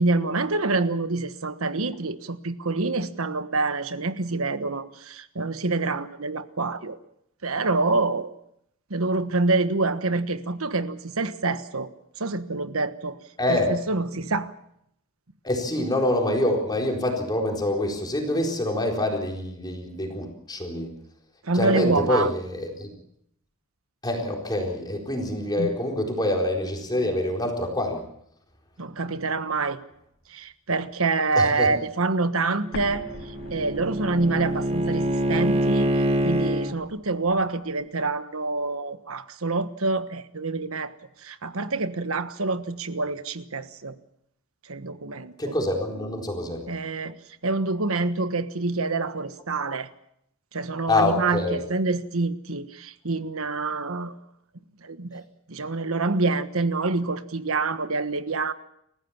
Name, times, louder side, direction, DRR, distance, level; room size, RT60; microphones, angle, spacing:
voice 1, 0.0-7.0 7.4-8.3 8.9-11.9 12.2-13.2 13.5-14.5 15.8-15.9 21.4-22.3 25.6-25.7 28.8-29.8 30.3-33.0 33.5-35.9 36.2-40.9 41.2-43.9 44.7-45.5 46.7-47.2 47.4-49.9 50.5-54.1 54.8-55.2 55.5-58.5, right 3 dB, 70° right, 11 dB, 1.4 m, -26 dB
voice 2, 13.4-13.7 15.4-20.9 21.5-22.9 24.0-28.0 31.3-31.7 45.4-46.6 50.9-51.6, left 1 dB, 20° left, 1 dB, 4.2 m, -26 dB
Explosion, 32.7-37.5, left 1 dB, 50° left, 3.2 m, -44 dB
Bowed string instrument, 32.7-36.7, right 1 dB, 30° right, 1.4 m, -25 dB
29.5 x 15.0 x 7.3 m, 0.75 s
head